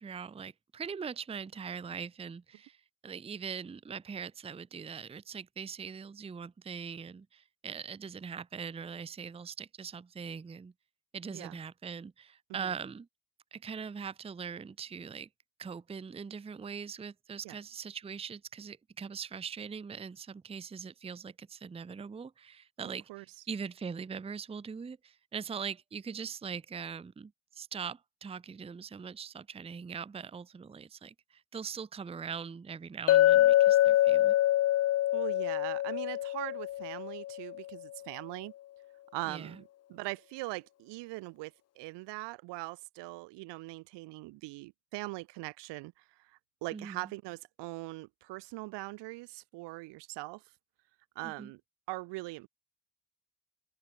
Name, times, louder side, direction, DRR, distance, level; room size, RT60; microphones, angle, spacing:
voice 1, 0.0-10.7 11.1-13.1 13.5-15.3 15.6-34.4 39.3-39.6 46.7-47.1 51.2-51.5, right 6 dB, 15° right, 0.5 m, -41 dB
Chink clink, 33.1-37.5, left 13 dB, 40° left, 0.4 m, -25 dB
voice 2, 35.1-38.5 39.1-50.4 51.1-51.6 51.9-52.5, right 22 dB, 85° right, 1.2 m, -41 dB
open air
supercardioid pair, 75°, 41 cm